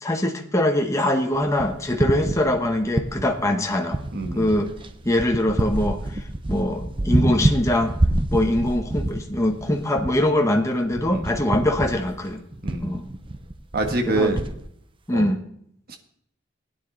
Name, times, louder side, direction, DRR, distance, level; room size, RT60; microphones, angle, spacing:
voice 1, 0.0-4.0 4.3-4.7 5.0-7.9 8.3-12.4 12.8-13.1 14.1-14.3 15.1-15.4, left 1 dB, 15° left, 3 dB, 1.1 m, -23 dB
sound 1, 1.3-3.5 3.9-14.6, right 1 dB, 25° right, 0.7 m, -27 dB
voice 2, 4.1-4.5 11.1-11.3 12.6-13.0 13.7-14.4 15.1-15.3 15.9-16.0, right 2 dB, 55° right, 5 dB, 1.7 m, -26 dB
16.5 x 10.0 x 4.1 m, 0.69 s
head